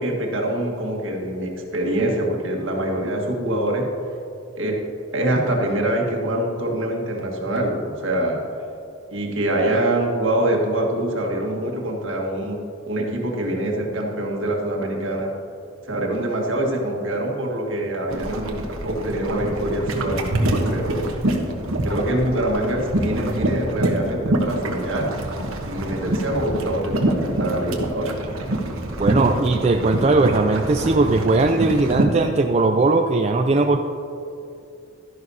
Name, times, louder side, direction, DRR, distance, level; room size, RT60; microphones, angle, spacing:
voice 1, 0.0-3.9 4.6-8.4 9.1-12.6 12.9-15.3 15.8-21.1 21.8-25.1 25.7-28.2, right 1 dB, 65° right, 0 dB, 1.6 m, -24 dB
sound 1, 18.1-32.0, right 1 dB, 80° right, 1.2 m, -25 dB
voice 2, 29.0-33.8, right 3 dB, 30° right, 4 dB, 0.3 m, -19 dB
12.5 x 11.0 x 2.8 m, 2.7 s
head